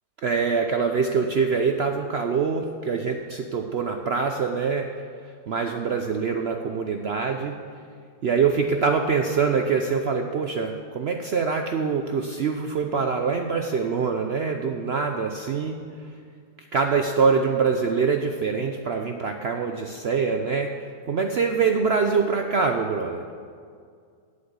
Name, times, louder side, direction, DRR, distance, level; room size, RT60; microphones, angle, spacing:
voice 1, 0.2-4.9 5.2-7.6 8.2-15.8 16.6-23.3, right 5 dB, 70° right, 5 dB, 0.6 m, -24 dB
8.6 x 7.8 x 8.2 m, 2.2 s
omnidirectional pair, 1.8 m